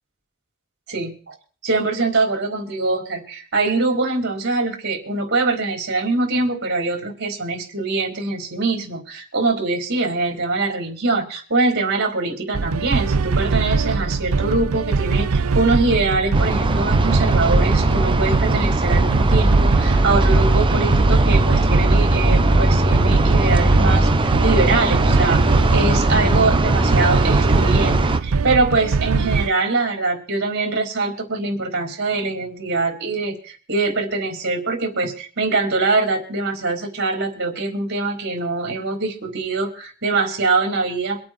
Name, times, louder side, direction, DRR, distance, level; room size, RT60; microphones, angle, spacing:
voice 1, 0.9-1.3 1.6-25.4 25.7-41.2, right 3 dB, 55° right, 2 dB, 4.2 m, -23 dB
sound 1, 12.5-29.5, right 4 dB, 75° right, 0.6 m, -22 dB
sound 2, 16.3-28.2, right 1 dB, 25° right, 1.0 m, -19 dB
24.5 x 8.6 x 4.4 m, 0.42 s
head